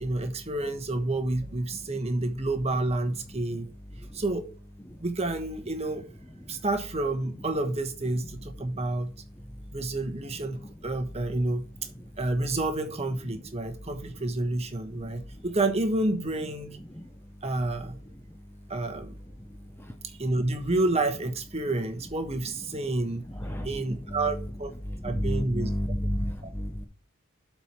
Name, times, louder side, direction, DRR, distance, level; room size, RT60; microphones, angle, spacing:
voice 1, 0.0-3.7 4.1-4.4 5.0-6.0 6.5-9.1 9.7-11.7 12.2-16.8 17.4-18.0 18.7-19.2 20.0-23.2 23.6-24.7 25.0-25.7 26.4-26.5, right 2 dB, 30° right, 1.2 m, -29 dB
voice 2, 23.3-24.2 24.9-26.8, equal, 10° left, 0.6 m, -31 dB
7.8 x 4.5 x 6.1 m
head